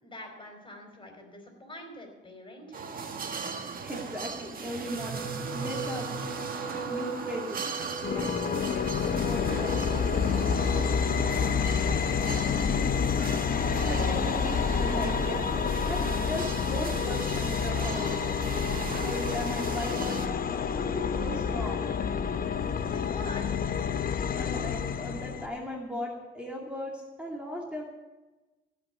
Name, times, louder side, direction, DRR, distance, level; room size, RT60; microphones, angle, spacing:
voice 1, 0.0-2.8 11.6-13.0 22.8-23.6, left 1 dB, 25° left, 3 dB, 4.5 m, -45 dB
sound 1, 2.7-20.3, right 4 dB, 45° right, 1.7 m, -38 dB
voice 2, 3.8-6.1 6.9-7.7 8.1-10.3 13.6-18.4 19.0-20.2 20.7-21.9 24.3-27.9, equal, 5° right, -2 dB, 2.4 m, -37 dB
sound 2, 4.8-13.3 14.1-14.3 14.6-14.7, right 5 dB, 80° right, 2.8 m, -40 dB
sound 3, 8.0-25.5, left 6 dB, 45° left, 0.9 m, -28 dB
16.5 x 6.1 x 9.0 m, 1.1 s
cardioid pair, 90°, 20 cm